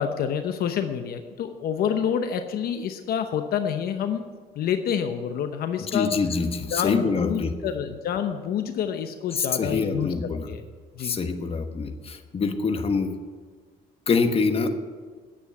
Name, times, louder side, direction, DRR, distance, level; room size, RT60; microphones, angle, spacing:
voice 1, 0.0-4.2 4.6-6.1 6.7-10.1 10.5-10.6 10.9-11.2, left 8 dB, 65° left, 7 dB, 0.9 m, -27 dB
voice 2, 5.8-7.5 9.3-10.5 11.0-13.2 14.1-14.7, left 4 dB, 35° left, 7 dB, 1.2 m, -25 dB
10.0 x 8.2 x 9.5 m, 1.5 s
cardioid pair, 110°, 17 cm